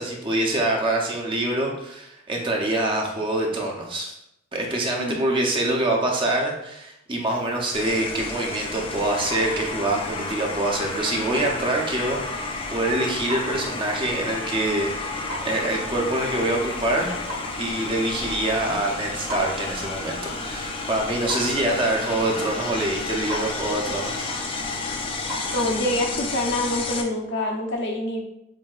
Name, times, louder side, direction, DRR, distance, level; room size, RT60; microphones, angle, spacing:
voice 1, 0.0-4.2 4.5-17.2 17.6-24.3, right 1 dB, 25° right, 0 dB, 0.7 m, -25 dB
voice 2, 5.0-5.5 25.5-28.2, left 1 dB, 60° left, 1 dB, 0.8 m, -26 dB
Clock, 7.2-25.8, equal, 50° right, 1.2 m, -40 dB
sound 1, 7.7-27.0, left 3 dB, 25° left, 0.4 m, -32 dB
7.3 x 2.8 x 2.4 m, 0.81 s
head